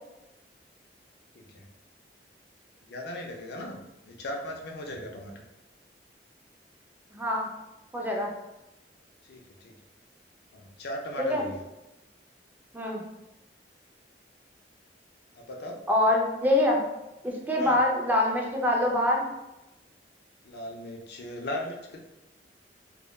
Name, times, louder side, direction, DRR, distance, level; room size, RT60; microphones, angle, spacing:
voice 1, 1.4-1.7 2.8-5.3 9.3-9.7 10.5-11.6 15.3-15.8 17.6-17.8 20.4-22.0, left 1 dB, 65° left, 1 dB, 0.4 m, -38 dB
voice 2, 7.1-7.5 7.9-8.3 11.2-11.4 12.7-13.0 15.9-16.8 17.2-19.3, left 1 dB, 10° right, -1 dB, 0.4 m, -25 dB
2.2 x 2.1 x 3.0 m, 0.94 s
head